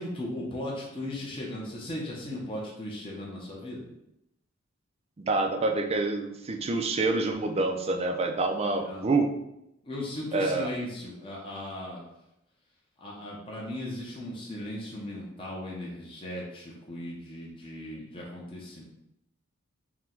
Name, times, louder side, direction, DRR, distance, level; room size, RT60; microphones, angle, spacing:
voice 1, 0.0-3.9 8.7-9.1 9.8-12.0 13.0-18.8, left 1 dB, 25° left, -4 dB, 0.7 m, -37 dB
voice 2, 5.2-9.3 10.3-10.7, right 3 dB, 30° right, 4 dB, 0.4 m, -27 dB
4.5 x 2.2 x 3.8 m, 0.84 s
head